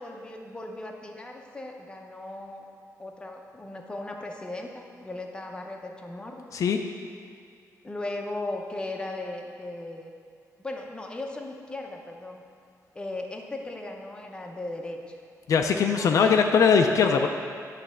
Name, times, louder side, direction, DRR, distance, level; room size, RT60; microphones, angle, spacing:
voice 1, 0.0-2.6 3.0-6.4 7.8-10.1 10.6-12.4 12.9-15.2 15.7-16.4, left 2 dB, 15° left, 1 dB, 0.6 m, -37 dB
voice 2, 15.5-17.3, left 6 dB, 60° left, 4 dB, 0.4 m, -21 dB
9.1 x 3.2 x 6.2 m, 2.4 s
wide cardioid pair, 140°, 6 cm